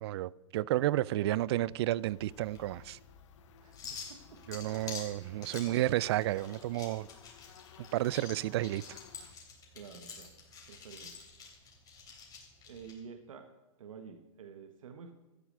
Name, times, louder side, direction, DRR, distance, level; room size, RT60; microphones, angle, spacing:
voice 1, 0.0-3.0 4.5-7.1 7.9-8.8, right 15 dB, 55° right, 0.4 m, -31 dB
sound 1, 0.8-12.9, left 5 dB, 20° left, 3.3 m, -49 dB
sound 2, 1.8-9.3, left 11 dB, 65° left, 0.9 m, -57 dB
voice 2, 3.6-4.8 9.7-10.3 10.7-11.2 12.7-13.5 13.8-15.1, right 6 dB, 85° right, 1.3 m, -50 dB
13.5 x 9.6 x 6.6 m
hypercardioid pair, 140°, 17 cm